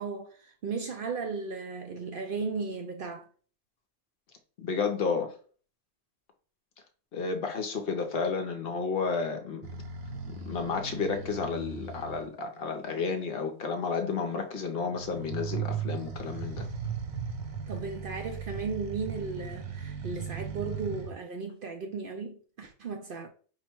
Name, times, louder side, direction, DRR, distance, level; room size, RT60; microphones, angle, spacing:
voice 1, 0.0-3.2 17.7-23.3, right 4 dB, 60° right, 0.5 m, -36 dB
voice 2, 4.6-5.3 7.1-9.7 10.3-16.7, left 5 dB, 55° left, 0.8 m, -31 dB
sound 1, 9.6-12.3 14.9-21.1, right 6 dB, 90° right, 1.2 m, -37 dB
4.8 x 2.1 x 4.4 m
omnidirectional pair, 1.3 m